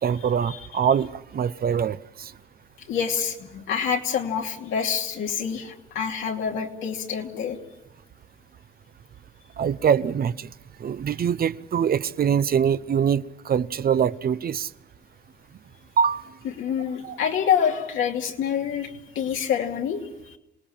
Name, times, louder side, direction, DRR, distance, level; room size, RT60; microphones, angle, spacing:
voice 1, 0.0-2.3 9.6-10.5 10.8-14.7 16.0-16.2 17.0-17.2, right 7 dB, 50° right, 0.8 m, -24 dB
voice 2, 2.9-7.6 16.6-18.9 19.1-20.0, left 7 dB, 80° left, 2.7 m, -26 dB
28.0 x 18.5 x 7.4 m
cardioid pair, 90°, 20 cm